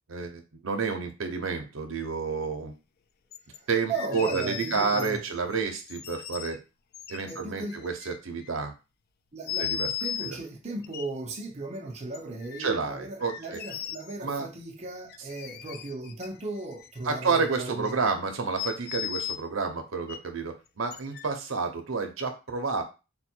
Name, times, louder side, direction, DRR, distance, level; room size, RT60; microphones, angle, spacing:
voice 1, 0.1-2.7 3.7-6.6 7.1-8.7 9.6-9.9 12.6-13.6 14.2-14.5 17.0-22.8, right 4 dB, 75° right, 0.7 m, -30 dB
sound 1, 3.3-3.6 3.9-5.4 5.9-6.6 6.9-8.5 9.5-10.3 10.8-11.0 12.1-12.8 13.2-14.2 15.1-16.3 16.6-17.5 17.9-18.0 18.6-19.4 20.1-20.2 20.9-21.3, left 9 dB, 50° left, 0.4 m, -36 dB
voice 2, 3.5-5.2 7.3-7.8 9.3-18.0, right 3 dB, 35° right, 0.7 m, -37 dB
3.7 x 2.2 x 4.4 m
head